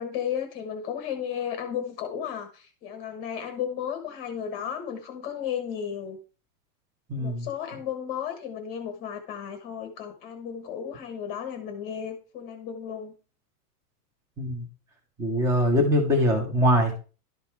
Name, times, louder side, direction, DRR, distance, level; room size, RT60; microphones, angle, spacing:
voice 1, 0.0-6.2 7.1-13.1, left 8 dB, 20° left, 7 dB, 1.0 m, -34 dB
voice 2, 7.1-7.5 14.4-14.6 15.2-16.9, equal, 5° right, 2 dB, 0.8 m, -22 dB
11.5 x 5.3 x 4.5 m, 0.36 s
supercardioid pair, 180°, 46 cm